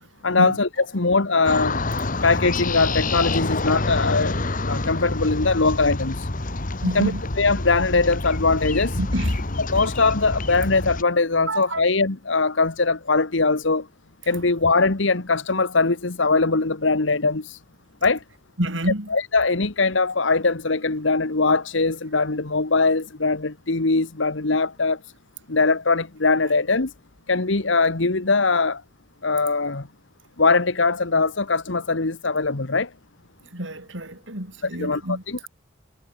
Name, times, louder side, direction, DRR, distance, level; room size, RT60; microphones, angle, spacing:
voice 1, 0.2-1.8 2.2-4.3 4.6-6.3 6.8-9.0 9.6-13.9 14.3-17.6 18.0-18.2 19.1-25.0 25.5-26.9 27.3-28.8 29.2-29.9 30.4-32.9 34.8-35.5, left 3 dB, 75° left, 1.5 m, -21 dB
sound 1, 1.5-11.0, left 2 dB, 45° left, 1.6 m, -27 dB
voice 2, 6.8-7.2 9.0-9.4 11.5-11.8 18.6-19.1 33.5-35.2, right 1 dB, 75° right, 6.8 m, -27 dB
head